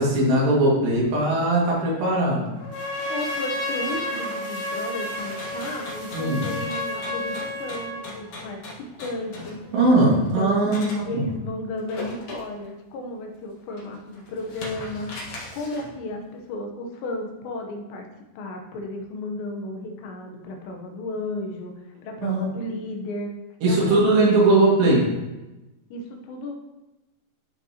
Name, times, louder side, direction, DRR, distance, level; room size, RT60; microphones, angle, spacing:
voice 1, 0.0-2.5 6.1-6.4 9.7-11.3 22.2-22.5 23.6-25.1, right 2 dB, 80° right, -5 dB, 4.3 m, -20 dB
sound 1, 2.5-8.1, right 1 dB, 40° right, 1.9 m, -43 dB
Trumpet, 2.6-8.1, left 1 dB, 70° left, 2.6 m, -31 dB
voice 2, 3.1-9.6 10.1-15.1 15.5-18.1 18.4-21.7 22.0-23.3 23.7-24.7 25.9-26.5, left 2 dB, 85° left, 2 dB, 3.3 m, -33 dB
sound 2, 5.2-11.0 11.8-12.7 13.2-13.3 13.7-16.0, left 2 dB, 50° left, 1.8 m, -40 dB
13.0 x 5.6 x 2.9 m, 1.0 s
omnidirectional pair, 4.9 m